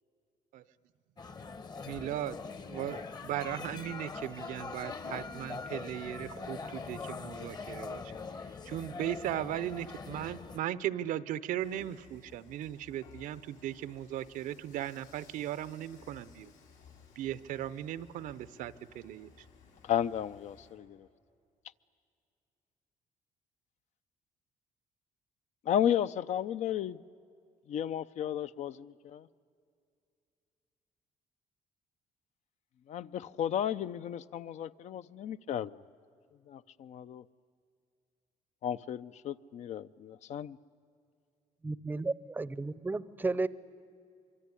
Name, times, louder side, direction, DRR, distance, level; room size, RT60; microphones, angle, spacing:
sound 1, 1.2-10.6, left 4 dB, 30° left, 1.0 m, -42 dB
voice 1, 1.8-2.4 2.7-8.0 8.7-16.5 17.2-19.3, right 12 dB, 85° right, 16 dB, 0.8 m, -37 dB
voice 2, 8.1-8.6 19.8-21.1 25.7-27.0 27.7-29.3 32.9-35.8 36.5-37.2 38.6-40.6, left 10 dB, 60° left, 14 dB, 0.6 m, -34 dB
Dishes pots and pans / Frying (food), 11.6-20.8, left 6 dB, 85° left, 6.0 m, -58 dB
voice 3, 41.6-43.5, right 3 dB, 15° right, 18 dB, 0.6 m, -33 dB
24.5 x 24.0 x 9.8 m, 2.4 s
cardioid pair, 135°, 13 cm